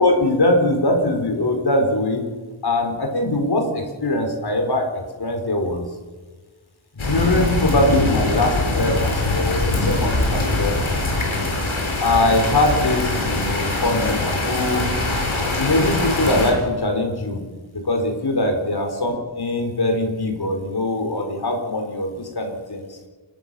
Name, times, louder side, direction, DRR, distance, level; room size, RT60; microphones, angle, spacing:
voice 1, 0.0-2.2 2.6-5.9 7.1-11.0 12.0-14.9 15.6-17.4 17.7-23.0, left 1 dB, 50° left, 3 dB, 4.6 m, -22 dB
sound 1, 7.0-16.5, left 2 dB, 75° left, 7.8 m, -22 dB
29.5 x 13.0 x 7.0 m, 1.4 s
wide cardioid pair, 90°, 48 cm